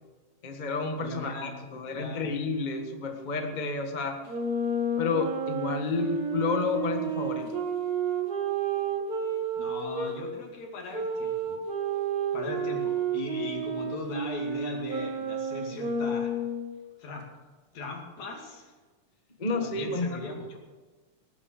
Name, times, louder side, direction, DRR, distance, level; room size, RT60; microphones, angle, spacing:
voice 1, 0.4-4.2 5.0-7.5 19.4-20.4, left 3 dB, 25° left, 4 dB, 0.9 m, -30 dB
voice 2, 1.0-2.4 9.6-11.6 12.3-16.3 17.0-17.3 17.7-18.7 19.6-20.6, left 3 dB, 70° left, 1 dB, 3.9 m, -39 dB
Wind instrument woodwind instrument, 4.3-10.1 10.9-16.7, right 4 dB, 35° right, 2.0 m, -31 dB
19.0 x 9.5 x 6.6 m, 1.3 s
omnidirectional pair, 3.3 m